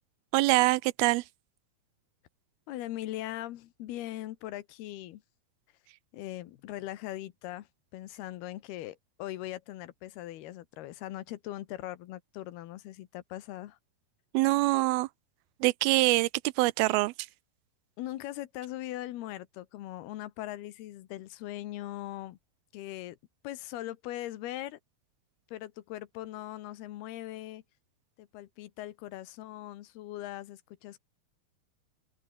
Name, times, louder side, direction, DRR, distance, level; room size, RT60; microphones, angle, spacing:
voice 1, 0.3-1.2 14.3-15.1 15.6-16.3 16.6-17.1, right 20 dB, 80° right, 2.4 m, -24 dB
voice 2, 2.7-5.2 6.1-7.7 7.9-13.8 18.0-22.4 22.7-23.2 23.4-24.8 25.5-27.6 28.2-31.0, left 14 dB, 80° left, 3.2 m, -40 dB
omnidirectional pair, 4.5 m